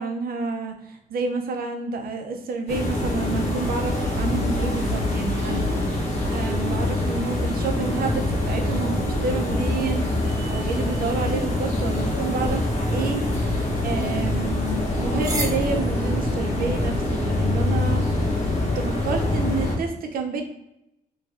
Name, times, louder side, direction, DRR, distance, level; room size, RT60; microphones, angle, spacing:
voice 1, 0.0-20.4, right 4 dB, 75° right, 4 dB, 0.7 m, -30 dB
sound 1, 2.7-19.8, left 1 dB, 45° left, 1.3 m, -24 dB
sound 2, 12.4-18.9, right 2 dB, 20° right, 0.7 m, -39 dB
3.1 x 2.7 x 3.6 m, 0.84 s
cardioid pair, 110°, 15 cm